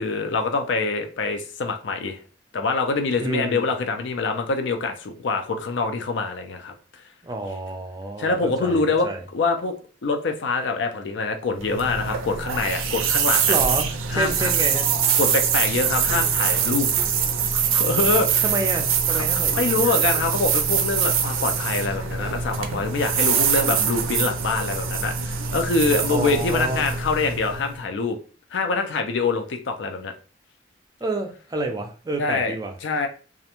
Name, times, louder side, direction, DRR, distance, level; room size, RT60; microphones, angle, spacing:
voice 1, 0.0-2.2 2.5-6.7 8.2-9.7 10.0-13.6 14.1-14.5 15.2-16.9 17.5-18.5 19.1-28.2 28.5-30.1 32.2-32.6 32.8-33.1, left 3 dB, 65° left, 0.4 m, -25 dB
voice 2, 3.2-3.7 7.2-9.2 13.5-14.9 18.4-19.7 26.1-26.8 31.0-32.7, right 2 dB, 20° right, 0.4 m, -29 dB
sound 1, 11.6-27.8, right 7 dB, 90° right, 0.4 m, -23 dB
2.4 x 2.1 x 2.9 m
head